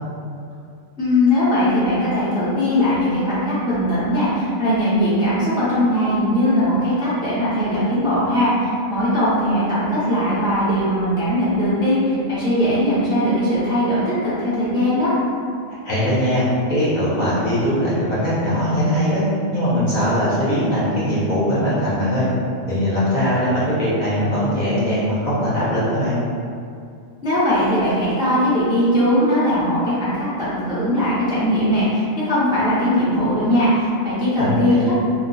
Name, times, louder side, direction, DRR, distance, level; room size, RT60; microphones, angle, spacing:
voice 1, 1.0-15.1 27.2-35.0, equal, 5° right, -11 dB, 0.4 m, -19 dB
voice 2, 15.8-16.4 16.7-19.2 19.5-22.3 22.7-26.1 34.4-34.9, equal, 40° left, -10 dB, 0.7 m, -20 dB
2.3 x 2.2 x 3.9 m, 2.4 s
omnidirectional pair, 1.4 m